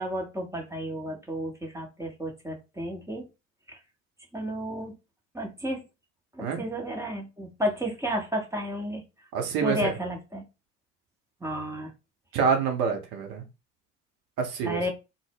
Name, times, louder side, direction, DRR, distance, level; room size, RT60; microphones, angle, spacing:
voice 1, 0.0-3.3 3.7-3.8 4.3-4.9 5.3-5.8 6.3-9.0 9.6-10.4 11.4-11.9 14.6-14.9, equal, 10° right, 0.7 m, -32 dB
voice 2, 9.3-9.9 12.3-13.4 14.4-14.9, right 6 dB, 55° right, 0.8 m, -27 dB
2.1 x 2.0 x 3.4 m
figure-of-eight pair, 60°, 38 cm